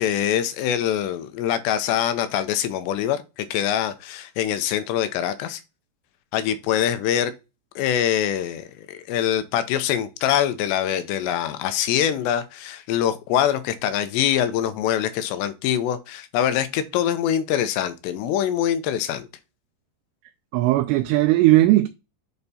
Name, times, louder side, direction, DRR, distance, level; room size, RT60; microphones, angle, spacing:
voice 1, 0.0-5.6 6.3-7.3 7.8-19.3, left 10 dB, 85° left, 2.9 m, -24 dB
voice 2, 20.5-21.9, right 16 dB, 85° right, 2.6 m, -17 dB
8.0 x 3.3 x 4.1 m
omnidirectional pair, 5.0 m